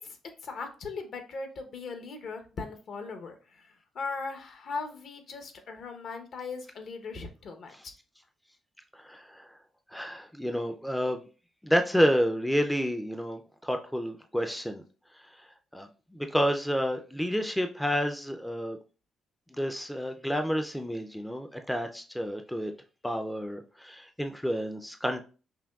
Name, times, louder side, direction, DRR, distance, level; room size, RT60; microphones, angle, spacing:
voice 1, 0.4-3.7 3.9-7.9, left 4 dB, 60° left, 6 dB, 0.8 m, -39 dB
voice 2, 8.9-9.5 9.9-11.2 11.6-14.8 15.7-18.8 19.5-22.7 23.0-25.2, equal, 5° left, 5 dB, 0.4 m, -29 dB
5.8 x 2.2 x 2.3 m, 0.35 s
cardioid pair, 90°, 0 cm